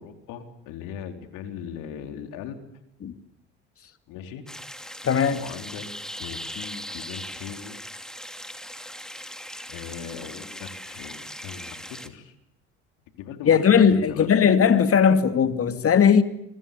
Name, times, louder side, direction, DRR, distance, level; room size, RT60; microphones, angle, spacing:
voice 1, 0.0-2.6 4.1-4.4 5.3-5.9 6.2-7.8 9.7-12.3 13.2-14.3, left 8 dB, 70° left, 4.2 m, -39 dB
sound 1, 4.5-12.1, equal, ahead, 2.8 m, -39 dB
voice 2, 5.0-5.4 13.5-16.2, left 7 dB, 45° left, 2.7 m, -18 dB
27.0 x 24.5 x 7.0 m
hypercardioid pair, 65°, 33 cm